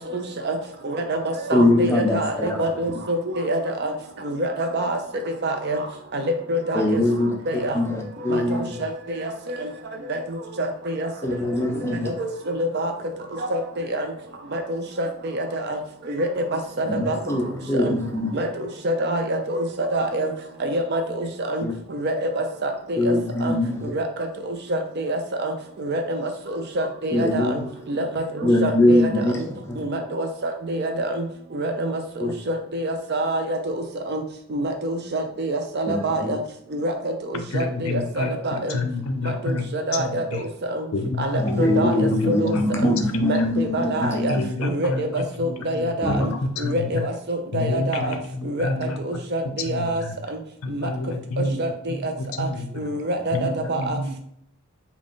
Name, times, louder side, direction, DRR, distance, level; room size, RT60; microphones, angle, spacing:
voice 1, 0.1-0.6 0.8-3.9 4.2-5.0 5.4-5.8 6.1-7.0 7.5-7.8 8.3-8.6 9.1-9.7 10.1-10.2 10.6-11.1 11.9-12.9 13.4-14.1 14.5-15.8 16.1-17.2 17.7-17.9 18.3-20.3 20.6-21.6 21.9-23.1 23.4-23.5 23.8-24.0 24.5-25.5 25.8-27.6 27.9-29.1 29.4-29.5 29.8-31.2 31.5-34.2 34.5-36.4 36.7-38.8 39.4-40.9 41.2-42.6 42.8-42.9 43.2-44.3 44.6-46.3 46.6-48.1 48.4-50.0 50.3-50.4 50.7-50.9 51.6-52.1 52.4-52.5 52.8-54.0, right 1 dB, 45° right, 0.5 m, -26 dB
voice 2, 1.5-2.6 2.9-3.0 6.7-7.3 7.7-8.8 11.2-12.1 16.9-18.3 21.6-21.7 23.0-23.9 27.1-27.6 28.4-29.8 32.2-32.3 35.9-36.3 41.4-44.4 46.0-46.3, left 1 dB, 10° left, 0.4 m, -22 dB
voice 3, 37.3-39.6 39.9-40.4 40.9-43.5 44.0-47.0 47.5-49.2 49.7-50.1 50.6-52.7 53.3-54.2, left 2 dB, 70° left, 0.5 m, -29 dB
3.7 x 2.3 x 3.6 m
head